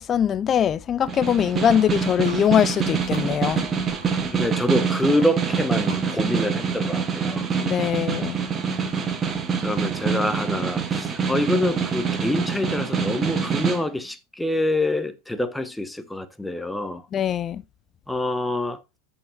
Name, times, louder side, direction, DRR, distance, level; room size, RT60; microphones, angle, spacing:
voice 1, 0.0-3.6 7.6-8.4 17.1-17.6, left 9 dB, 25° left, 0.6 m, -22 dB
Snare drum, 1.1-13.8, right 6 dB, 20° right, 1.5 m, -25 dB
sound 1, 1.7-3.3 3.5-4.3 4.6-5.6 5.9-6.5, left 5 dB, 75° left, 2.7 m, -45 dB
voice 2, 4.3-7.5 9.6-17.1 18.1-18.8, left 1 dB, 5° left, 1.0 m, -26 dB
14.0 x 5.6 x 2.7 m
figure-of-eight pair, 90°, 0 cm